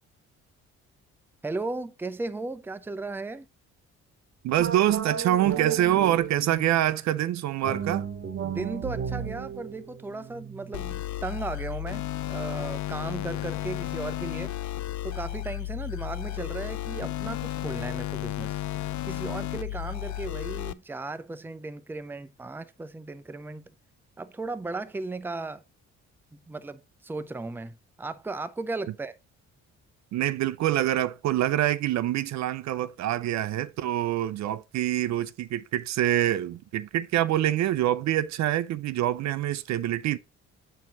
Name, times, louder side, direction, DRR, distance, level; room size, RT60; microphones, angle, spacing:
voice 1, 1.4-3.5 8.4-14.6 15.0-18.6 19.0-23.7 24.2-25.6 26.3-29.1, right 3 dB, 5° right, 0.5 m, -36 dB
voice 2, 4.4-8.1 30.1-40.2, right 13 dB, 65° right, 0.5 m, -25 dB
sound 1, 4.6-6.9 7.6-11.0, right 8 dB, 45° right, 1.0 m, -34 dB
sound 2, 10.7-20.7, left 15 dB, 70° left, 0.5 m, -33 dB
7.2 x 4.5 x 3.8 m
cardioid pair, 90°, 30 cm